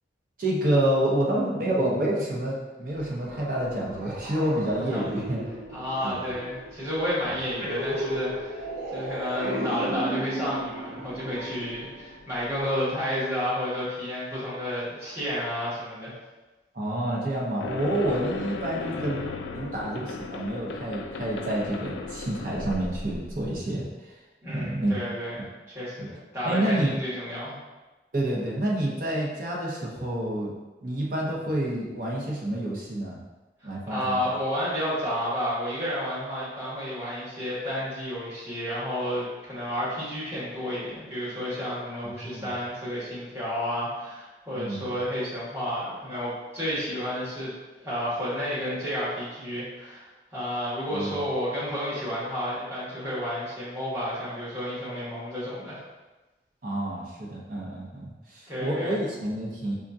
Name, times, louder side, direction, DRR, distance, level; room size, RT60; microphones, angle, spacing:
voice 1, 0.4-5.4 6.0-6.3 7.2-7.3 8.0-8.1 16.7-23.9 24.5-25.0 26.0-26.1 26.4-26.9 28.1-30.5 30.8-33.2 33.6-34.2 42.0-42.5 44.5-45.0 50.9-51.3 56.6-59.8, right 1 dB, 50° right, -4 dB, 0.8 m, -28 dB
sound 1, 2.9-12.6, right 1 dB, 70° right, 1.1 m, -35 dB
voice 2, 5.7-8.6 8.9-16.2 24.4-25.5 25.7-27.6 33.9-47.5 47.8-55.8 58.5-59.0, equal, 15° right, -11 dB, 1.4 m, -31 dB
sound 2, 17.6-23.7, left 3 dB, 90° left, 0.3 m, -36 dB
5.0 x 2.4 x 2.6 m, 1.1 s
head